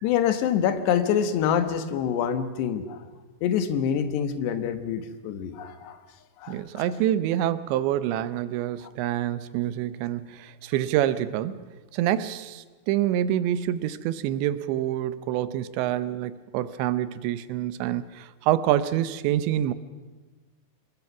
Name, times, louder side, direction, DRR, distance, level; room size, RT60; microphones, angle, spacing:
voice 1, 0.0-3.0 3.4-6.0 6.4-6.8 8.8-8.9, left 8 dB, 75° left, 3.3 m, -26 dB
voice 2, 6.5-11.7 11.9-19.7, right 12 dB, 90° right, 3.2 m, -26 dB
26.0 x 21.5 x 6.0 m
omnidirectional pair, 5.0 m